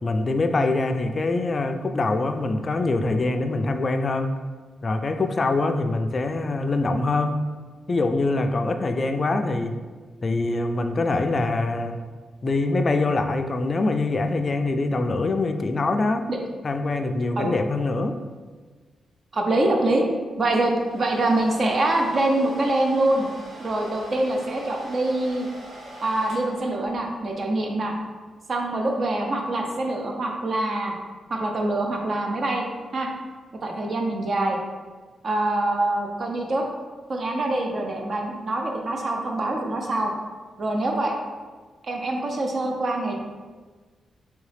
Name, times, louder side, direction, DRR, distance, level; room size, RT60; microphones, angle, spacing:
voice 1, 0.0-4.3 4.8-7.4 7.9-9.7 10.2-12.0 12.4-16.3 16.6-18.2, left 2 dB, 40° left, 7 dB, 0.3 m, -24 dB
voice 2, 19.3-20.0 20.4-23.3 23.6-25.5 26.0-27.9 28.5-30.9 31.3-32.6 32.9-33.1 33.6-34.6 35.2-36.6 37.1-40.1 40.6-41.1 41.8-43.1, right 2 dB, 50° right, 2 dB, 0.6 m, -24 dB
Domestic sounds home sounds, 20.5-27.2, right 1 dB, 90° right, 1.2 m, -43 dB
3.6 x 3.1 x 3.3 m, 1.4 s
cardioid pair, 95°, 0 cm